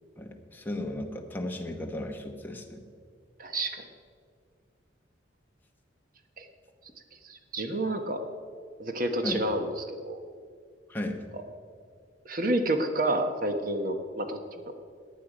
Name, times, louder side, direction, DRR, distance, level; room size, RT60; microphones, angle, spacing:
voice 1, 0.2-2.8 9.2-9.4 10.9-11.2, left 1 dB, 10° left, 2 dB, 1.1 m, -35 dB
voice 2, 3.4-3.8 6.4-6.5 7.2-8.2 8.8-10.2 11.3-11.4 12.2-14.4, right 1 dB, 45° right, 6 dB, 1.2 m, -29 dB
15.0 x 10.0 x 5.0 m, 2.2 s
head